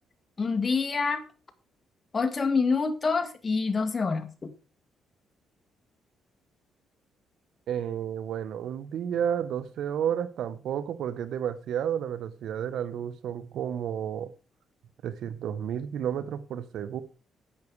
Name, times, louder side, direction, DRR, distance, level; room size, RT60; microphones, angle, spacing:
voice 1, 0.4-1.2 2.1-4.5, left 4 dB, 30° left, 7 dB, 1.9 m, -26 dB
voice 2, 7.7-14.3 15.0-17.0, right 9 dB, 75° right, 14 dB, 1.1 m, -31 dB
10.5 x 8.4 x 4.7 m, 0.34 s
cardioid pair, 90°, 0 cm